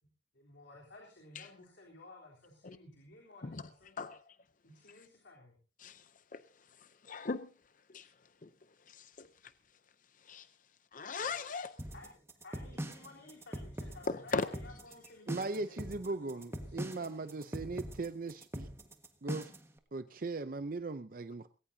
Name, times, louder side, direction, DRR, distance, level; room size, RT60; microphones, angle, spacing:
voice 1, 0.3-4.0 4.6-5.6 11.9-12.1 12.4-17.8, left 2 dB, 85° left, 3.7 m, -55 dB
voice 2, 7.0-7.5 7.9-8.1 8.4-8.5 8.9-9.3 10.3-10.5 10.9-11.7 14.1-14.4, left 4 dB, 45° left, 0.6 m, -37 dB
sound 1, 11.8-19.7, equal, 15° right, 1.6 m, -42 dB
voice 3, 15.3-18.7 19.2-19.5 19.9-21.5, right 3 dB, 50° right, 0.6 m, -39 dB
20.0 x 17.5 x 2.8 m
head